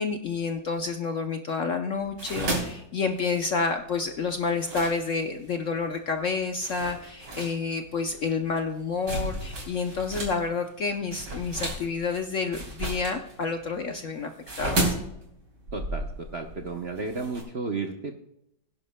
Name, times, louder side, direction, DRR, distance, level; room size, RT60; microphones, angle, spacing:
voice 1, 0.0-14.3 14.6-14.9, left 4 dB, 60° left, 5 dB, 0.9 m, -29 dB
sound 1, 1.9-5.5 6.1-6.2 6.6-10.4 10.7-17.4, right 1 dB, 70° right, 4.2 m, -33 dB
voice 2, 15.7-18.2, right 4 dB, 50° right, 4 dB, 0.8 m, -33 dB
21.0 x 10.5 x 2.2 m, 0.79 s
omnidirectional pair, 2.0 m